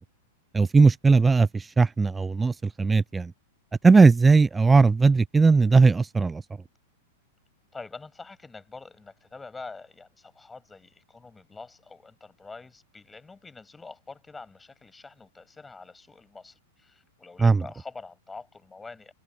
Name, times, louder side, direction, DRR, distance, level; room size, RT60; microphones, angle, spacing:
voice 1, 0.5-1.5 1.8-2.5 2.8-3.3 3.8-6.4 17.4-17.6, right 4 dB, 10° right, 0.4 m, -18 dB
voice 2, 7.7-19.1, left 4 dB, 10° left, 7.7 m, -45 dB
figure-of-eight pair, 95°, 0 cm